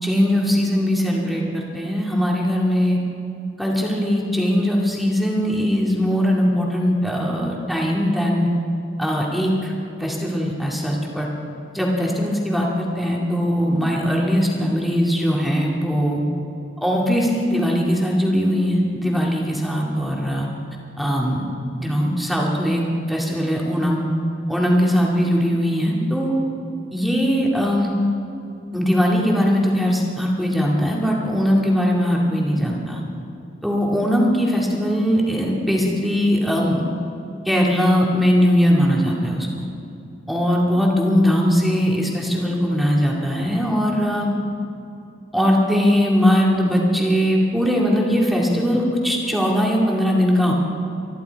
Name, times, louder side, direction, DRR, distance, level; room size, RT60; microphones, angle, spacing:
voice 1, 0.0-3.0 3.6-8.5 9.0-9.7 10.0-11.3 11.7-16.2 16.8-20.5 21.0-21.5 21.7-22.8 23.1-24.0 24.5-26.3 26.9-27.9 28.7-33.0 33.6-36.8 37.5-39.7 40.3-44.3 45.3-50.5, equal, ahead, -3 dB, 2.2 m, -20 dB
25.5 x 11.5 x 4.7 m, 2.6 s
head